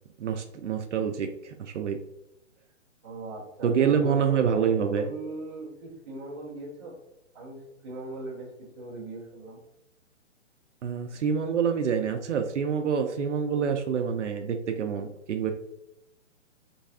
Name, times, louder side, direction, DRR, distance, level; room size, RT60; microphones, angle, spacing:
voice 1, 0.2-2.0 3.6-5.1 10.8-15.5, right 7 dB, 70° right, 6 dB, 0.5 m, -27 dB
voice 2, 3.0-4.5 4.9-7.0 7.3-8.5 8.8-9.6, right 2 dB, 20° right, -6 dB, 0.6 m, -39 dB
4.0 x 3.3 x 2.3 m, 0.83 s
hypercardioid pair, 170°, 38 cm